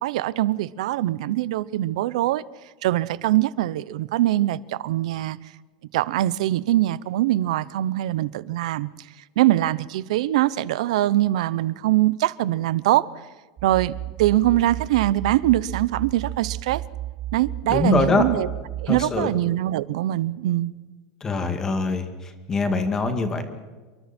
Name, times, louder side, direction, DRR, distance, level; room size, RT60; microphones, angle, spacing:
voice 1, 0.0-2.4 2.8-5.4 5.9-8.9 9.4-13.1 13.6-13.9 14.2-16.8 17.3-18.5 18.8-20.7, right 14 dB, 80° right, 0.8 m, -22 dB
sound 1, 13.6-19.0, right 14 dB, 25° right, 1.6 m, -33 dB
voice 2, 17.7-18.2 18.9-19.3 21.2-22.1 22.5-23.4, left 3 dB, 15° left, 2.2 m, -23 dB
29.0 x 23.0 x 4.4 m
supercardioid pair, 175°, 4 cm